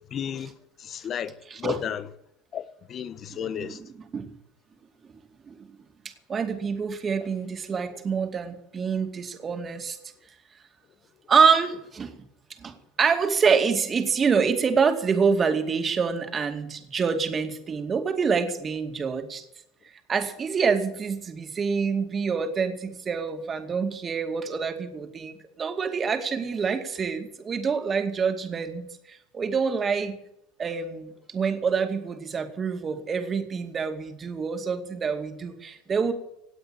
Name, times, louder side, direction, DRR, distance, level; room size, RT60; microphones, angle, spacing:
voice 1, 0.1-2.1 2.5-3.8, left 9 dB, 35° left, 1.1 m, -33 dB
voice 2, 6.3-10.0 11.3-12.1 12.6-19.4 20.1-30.1 30.6-36.1, right 5 dB, 25° right, 2.4 m, -26 dB
17.5 x 8.6 x 8.9 m
supercardioid pair, 110°, 0 cm